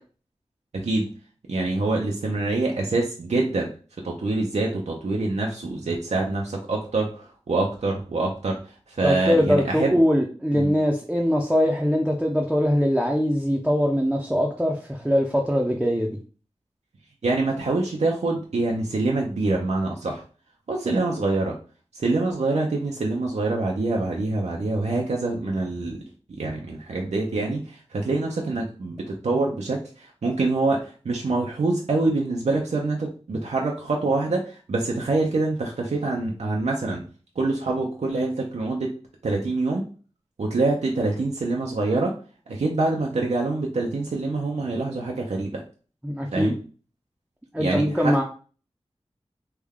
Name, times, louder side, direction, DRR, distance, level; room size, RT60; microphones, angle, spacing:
voice 1, 0.7-1.1 1.5-3.7 4.0-8.6 8.9-10.0 10.5-10.7 17.2-20.2 20.7-21.6 21.9-26.0 26.4-37.0 37.4-38.9 39.2-39.8 40.4-42.2 42.5-45.6 46.3-46.6 47.6-48.2, right 2 dB, 85° right, -1 dB, 0.6 m, -25 dB
voice 2, 9.0-16.1 46.0-46.6 47.5-48.2, equal, 5° right, -1 dB, 0.5 m, -22 dB
3.3 x 2.2 x 3.5 m, 0.38 s
wide cardioid pair, 60°, 11 cm